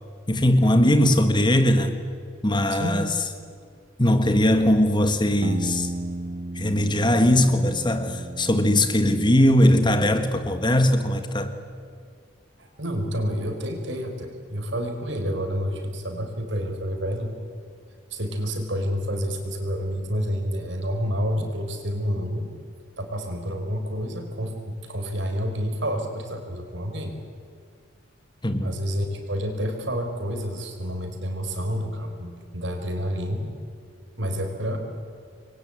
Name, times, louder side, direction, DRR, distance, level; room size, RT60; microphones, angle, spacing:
voice 1, 0.3-2.0 2.4-3.1 4.0-5.9 6.5-11.5 28.4-28.7, left 1 dB, 25° left, 1.6 m, -20 dB
voice 2, 2.7-3.1 12.6-17.3 18.1-22.5 23.0-27.1 28.6-33.5 34.2-34.8, equal, 65° right, 4.9 m, -29 dB
sound 1, 5.4-10.1, right 1 dB, 35° right, 0.9 m, -35 dB
27.5 x 23.0 x 9.0 m
head